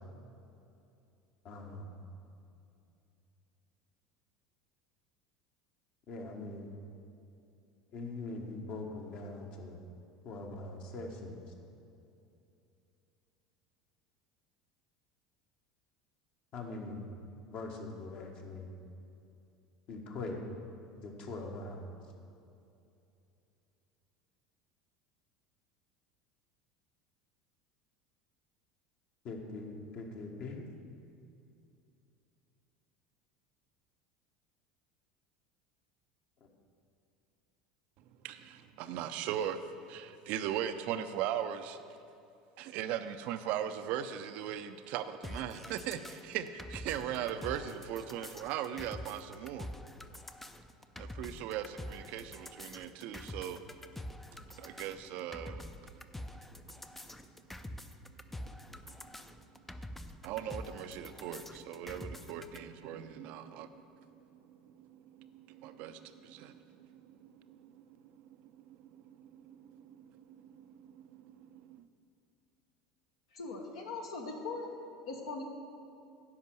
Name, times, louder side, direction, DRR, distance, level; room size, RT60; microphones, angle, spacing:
voice 1, 1.4-1.9 6.1-6.7 7.9-9.8 10.2-11.4 16.5-17.0 17.5-18.7 19.9-20.4 20.9-21.8 29.2-30.7, left 3 dB, 45° left, 2 dB, 1.4 m, -42 dB
voice 2, 38.0-41.8 42.6-49.7 51.0-53.6 54.6-55.7 58.5-59.1 60.2-71.9, right 10 dB, 50° right, 10 dB, 0.5 m, -40 dB
sound 1, 45.2-62.6, left 1 dB, 5° left, 0.5 m, -46 dB
voice 3, 73.3-74.7 75.0-75.4, left 3 dB, 65° left, 1 dB, 1.3 m, -40 dB
10.5 x 5.2 x 7.5 m, 2.7 s
figure-of-eight pair, 70°, 3 cm